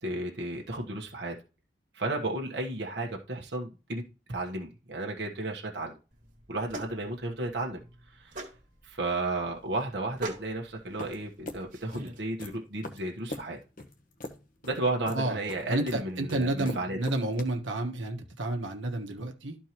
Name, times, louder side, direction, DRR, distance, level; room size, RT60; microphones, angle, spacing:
voice 1, 0.0-1.3 1.9-4.0 4.3-5.9 6.5-7.8 8.1-8.3 8.8-13.6 14.6-17.0, right 2 dB, 60° right, 1.2 m, -33 dB
sound 1, 6.1-12.2, right 2 dB, 40° right, 1.9 m, -43 dB
sound 2, 11.0-17.4, left 2 dB, 45° left, 1.0 m, -42 dB
voice 2, 15.7-19.6, right 2 dB, 80° right, 1.3 m, -30 dB
13.0 x 4.5 x 3.0 m
head